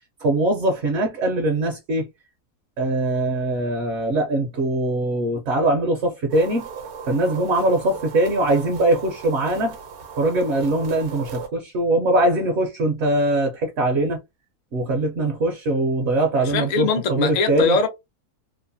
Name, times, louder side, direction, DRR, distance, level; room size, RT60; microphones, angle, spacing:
voice 1, 0.2-2.1 2.8-6.7 7.0-9.7 10.2-14.2 14.7-17.8, right 1 dB, 60° right, 0.7 m, -22 dB
sound 1, 6.3-11.5, right 6 dB, 75° right, 1.1 m, -37 dB
voice 2, 16.4-17.9, left 4 dB, 80° left, 0.3 m, -21 dB
3.0 x 2.1 x 2.6 m
omnidirectional pair, 1.6 m